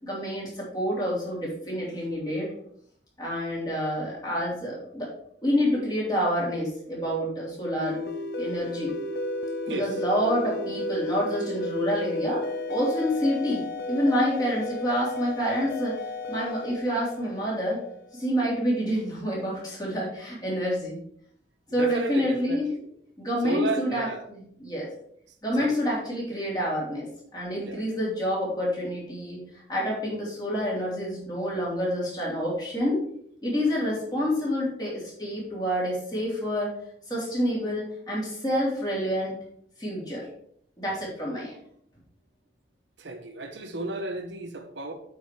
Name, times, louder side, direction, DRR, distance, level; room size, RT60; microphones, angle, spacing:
voice 1, 0.0-2.5 3.2-5.1 5.4-8.0 8.4-8.9 9.7-15.9 16.3-17.8 18.1-21.0 21.7-22.7 23.2-24.9 25.4-27.1 27.3-33.0 33.4-36.7 37.1-39.3 39.8-40.3 40.8-41.6, equal, 20° left, 3.4 m, -28 dB
sound 1, 7.8-18.1, left 2 dB, 55° left, 0.7 m, -33 dB
voice 2, 21.8-22.8 23.4-24.2 25.6-25.8 27.7-27.8 43.0-44.9, right 2 dB, 70° right, 1.0 m, -33 dB
7.9 x 5.1 x 4.9 m
head